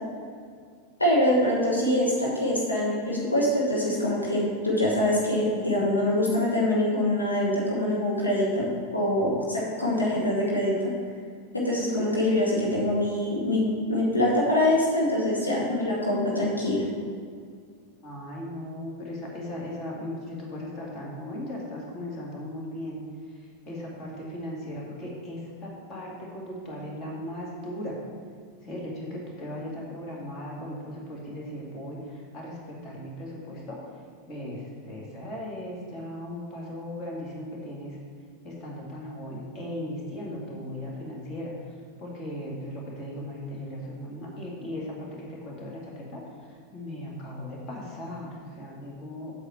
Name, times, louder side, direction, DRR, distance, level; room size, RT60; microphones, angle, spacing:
voice 1, 1.0-10.8 11.5-13.6 13.9-16.8, left 1 dB, 80° left, -4 dB, 1.6 m, -24 dB
voice 2, 18.0-23.0 23.7-28.0 28.6-33.8 34.3-38.0 38.4-41.5 42.0-46.2 46.7-49.3, left 1 dB, 30° left, -3 dB, 2.4 m, -37 dB
8.0 x 7.4 x 4.4 m, 2.1 s
figure-of-eight pair, 90°, 0 cm